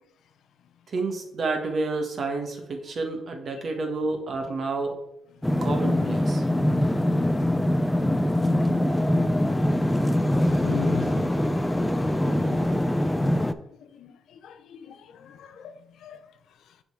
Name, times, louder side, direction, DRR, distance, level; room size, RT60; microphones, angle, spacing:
voice 1, 0.9-5.0 5.6-6.4, right 3 dB, 50° right, 1.4 m, -29 dB
sound 1, 5.4-13.5, left 1 dB, 10° left, 0.4 m, -23 dB
voice 2, 10.2-11.7 12.0-12.8 13.6-16.3 16.7-16.8, left 7 dB, 75° left, 0.6 m, -39 dB
6.9 x 3.9 x 4.7 m
cardioid pair, 90°, 0 cm